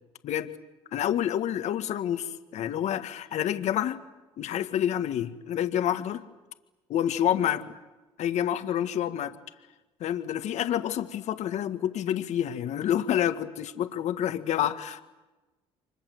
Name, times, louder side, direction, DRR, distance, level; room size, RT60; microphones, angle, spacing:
voice 1, 0.9-4.0 4.4-6.2 6.9-7.6 8.2-9.3 10.0-15.0, left 10 dB, 65° left, 9 dB, 1.8 m, -28 dB
29.5 x 25.0 x 8.0 m, 1.1 s
supercardioid pair, 75°, 13 cm